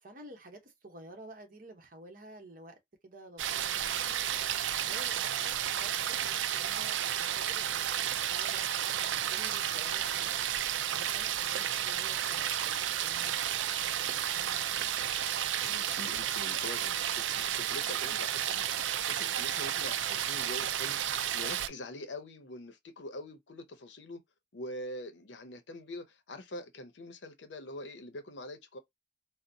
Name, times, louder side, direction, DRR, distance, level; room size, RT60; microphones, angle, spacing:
voice 1, 0.0-2.7 3.0-4.2 4.7-5.9 6.2-10.4 10.9-13.5 13.8-14.9, right 1 dB, 50° right, 0.9 m, -51 dB
sound 1, 3.4-21.7, right 10 dB, 85° right, 0.4 m, -32 dB
voice 2, 15.6-24.2 24.5-28.8, left 1 dB, 75° left, 0.7 m, -44 dB
3.9 x 2.0 x 2.6 m
head